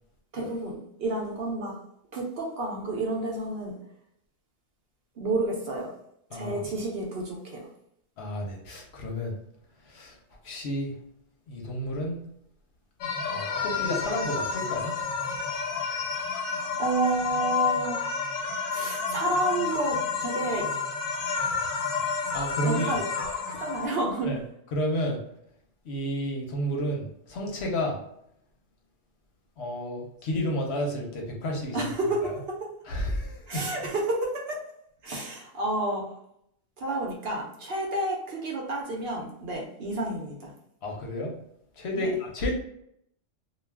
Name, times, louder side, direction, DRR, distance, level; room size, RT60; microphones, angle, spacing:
voice 1, 0.3-1.8 2.1-3.7 5.2-5.9 6.3-7.7 16.8-18.0 18.7-20.7 22.7-23.0 23.5-24.3 31.7-32.7 33.5-34.6 35.0-36.0 36.8-40.5 42.0-42.1, right 2 dB, 60° right, -1 dB, 0.8 m, -30 dB
voice 2, 8.2-9.3 9.9-10.2 10.4-10.9 11.5-12.2 13.3-14.9 22.3-23.0 24.3-24.4 24.7-25.2 25.8-28.0 29.6-31.9 32.2-32.4 32.9-33.6 40.8-41.3 41.8-42.5, equal, 60° left, 0 dB, 0.9 m, -31 dB
sound 1, 13.0-23.9, left 5 dB, 90° left, 1.0 m, -30 dB
2.3 x 2.3 x 3.3 m, 0.74 s
omnidirectional pair, 1.4 m